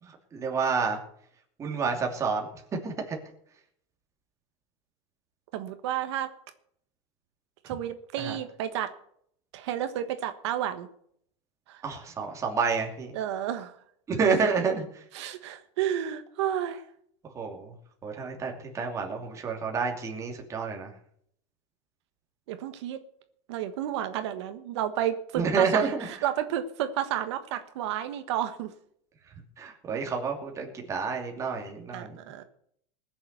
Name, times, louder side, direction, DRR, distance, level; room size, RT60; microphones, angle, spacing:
voice 1, 0.0-1.0 1.6-2.5 2.8-3.2 8.2-8.4 11.8-13.1 14.1-14.8 17.3-17.7 18.0-20.9 25.4-26.1 29.6-32.2, right 5 dB, 20° right, 1 dB, 2.8 m, -29 dB
voice 2, 5.5-6.3 7.6-8.9 9.5-10.9 11.7-11.8 13.1-13.8 15.1-16.8 22.5-23.0 23.5-28.7 31.9-32.4, right 11 dB, 75° right, 8 dB, 1.4 m, -31 dB
20.0 x 7.2 x 6.7 m, 0.68 s
supercardioid pair, 155°, 15 cm